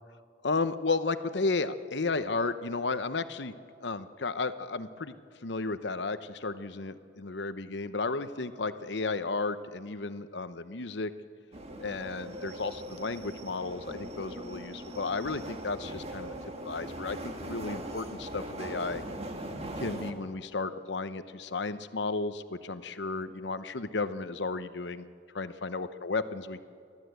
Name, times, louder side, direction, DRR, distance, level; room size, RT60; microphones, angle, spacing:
voice 1, 0.4-3.5 3.8-5.2 5.4-11.1 11.8-16.3 16.6-19.0 19.8-25.0 25.3-26.6, left 3 dB, 70° left, 12 dB, 0.9 m, -33 dB
sound 1, 11.5-20.1, right 1 dB, 35° right, 1.7 m, -40 dB
29.5 x 12.5 x 8.1 m, 2.3 s
head